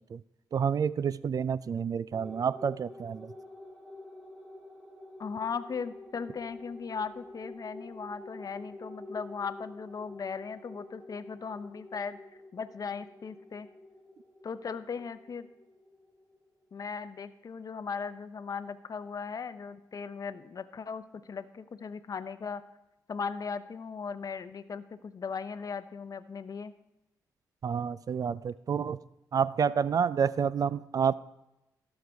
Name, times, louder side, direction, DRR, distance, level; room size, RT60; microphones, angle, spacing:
voice 1, 0.5-3.3 27.6-29.0 29.3-31.1, right 7 dB, 50° right, 18 dB, 0.3 m, -29 dB
sound 1, 2.1-16.9, left 1 dB, 15° right, 2.2 m, -49 dB
voice 2, 5.2-12.2 12.5-13.7 14.4-15.5 16.7-22.6 23.1-26.7, left 5 dB, 50° left, 12 dB, 0.6 m, -38 dB
17.0 x 6.5 x 3.5 m, 0.93 s
cardioid pair, 60°, 8 cm